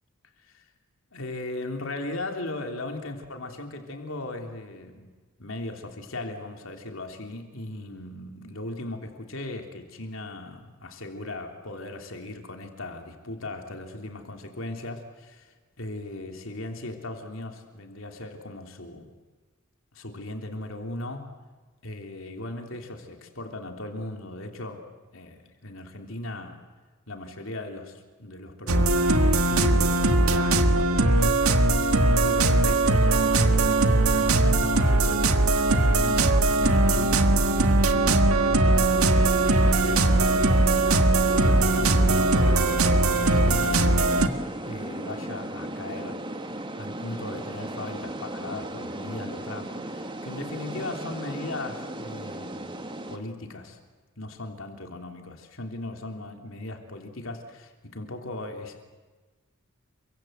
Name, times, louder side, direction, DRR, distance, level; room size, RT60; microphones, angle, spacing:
voice 1, 1.1-5.1 5.4-19.1 19.9-21.3 21.8-26.6 27.1-33.8 34.1-40.8 41.2-44.1 44.7-46.2 46.8-52.8 53.1-53.8 54.2-58.8, left 2 dB, 65° left, 4 dB, 3.4 m, -38 dB
sound 1, 28.7-44.3, right 2 dB, 85° right, 1.8 m, -20 dB
sound 2, 37.7-53.2, right 1 dB, 20° right, 1.8 m, -37 dB
28.5 x 24.5 x 8.1 m, 1.3 s
head